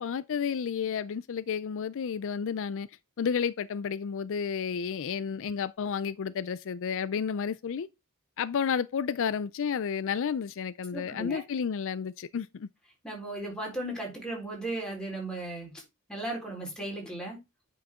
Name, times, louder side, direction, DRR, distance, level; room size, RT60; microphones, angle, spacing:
voice 1, 0.0-2.9 3.2-7.9 8.4-12.7, left 6 dB, 60° left, 0.4 m, -31 dB
voice 2, 10.9-11.4 13.0-15.8 16.1-17.4, right 1 dB, 5° left, 4.1 m, -36 dB
9.7 x 5.9 x 3.6 m
head